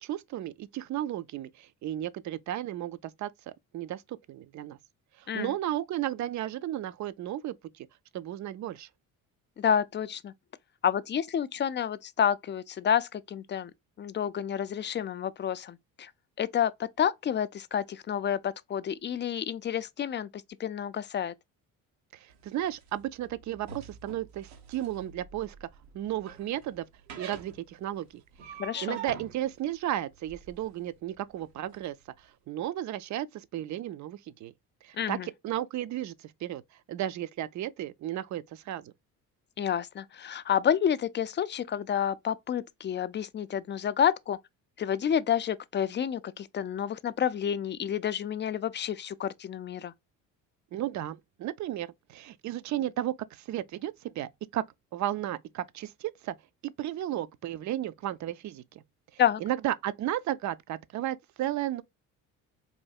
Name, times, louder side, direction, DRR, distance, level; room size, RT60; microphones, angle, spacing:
voice 1, 0.0-4.8 5.2-7.9 8.1-8.9 22.1-25.7 25.9-26.8 27.2-28.2 28.8-34.5 34.8-36.6 36.9-38.9 50.7-54.6 54.9-56.4 56.6-58.8 59.1-61.8, right 13 dB, 45° right, 0.5 m, -34 dB
voice 2, 9.6-10.3 10.8-13.7 14.0-16.1 16.4-20.3 20.6-21.3 28.6-29.0 35.0-35.3 39.6-44.4 44.8-49.9 59.2-59.4, left 9 dB, 30° left, 0.4 m, -29 dB
sound 1, 22.3-31.8, right 7 dB, 90° right, 0.9 m, -47 dB
4.3 x 2.7 x 2.3 m
supercardioid pair, 65°, 40 cm